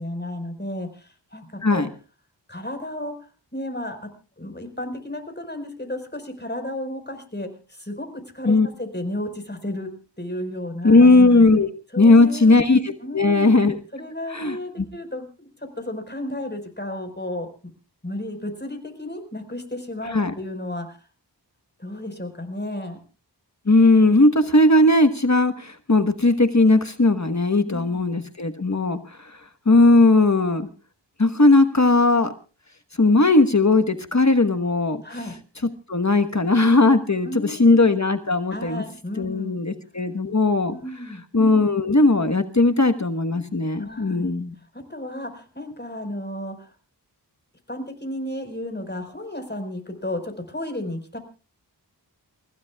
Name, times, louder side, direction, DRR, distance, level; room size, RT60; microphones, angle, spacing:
voice 1, 0.0-1.8 2.5-3.1 3.5-4.0 4.4-9.9 10.2-11.1 11.9-12.6 13.0-13.6 13.9-15.5 15.8-17.7 18.0-21.0 21.8-23.0 27.6-28.0 35.0-35.3 37.2-37.8 38.5-39.6 40.7-41.2 43.8-44.3 44.7-46.7 47.7-51.2, left 1 dB, 25° left, 6 dB, 4.7 m, -33 dB
voice 2, 10.8-11.7 12.0-13.8 14.3-14.9 20.1-20.3 23.7-29.4 29.6-30.7 31.2-32.3 33.0-35.0 35.9-38.8 39.2-40.7 41.3-44.5, left 2 dB, 40° left, 8 dB, 1.3 m, -18 dB
29.0 x 16.0 x 2.3 m, 0.35 s
wide cardioid pair, 55°, 42 cm